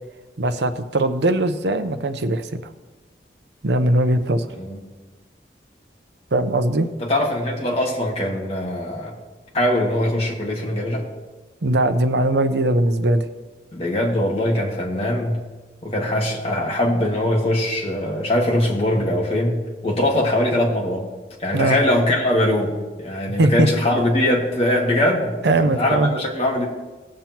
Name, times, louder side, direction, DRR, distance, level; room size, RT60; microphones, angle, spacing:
voice 1, 0.4-2.6 3.6-4.4 6.3-6.9 11.6-13.2 21.5-21.8 23.4-23.7 25.4-26.1, right 1 dB, 80° right, 9 dB, 0.7 m, -20 dB
voice 2, 7.0-9.1 9.5-11.1 13.7-15.4 15.8-19.6 19.8-21.1 21.4-26.7, left 1 dB, 35° left, -2 dB, 1.9 m, -21 dB
18.5 x 7.5 x 2.9 m, 1.3 s
head